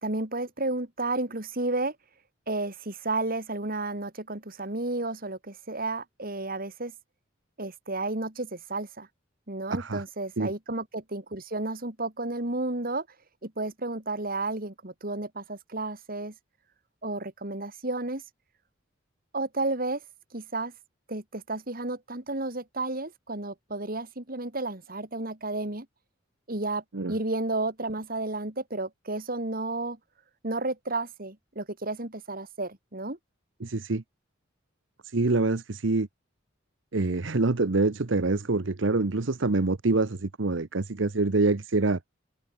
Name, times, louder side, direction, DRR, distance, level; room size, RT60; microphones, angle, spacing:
voice 1, 0.0-1.9 2.5-6.9 7.6-9.1 9.5-13.1 13.4-16.3 17.0-18.2 19.3-20.0 20.3-20.7 21.1-25.9 26.5-30.0 30.4-33.2, right 2 dB, 50° right, 3.2 m, -32 dB
voice 2, 9.7-10.0 10.4-10.5 26.9-27.1 33.6-34.0 35.1-36.1 36.9-42.0, right 3 dB, 70° right, 0.9 m, -25 dB
open air
head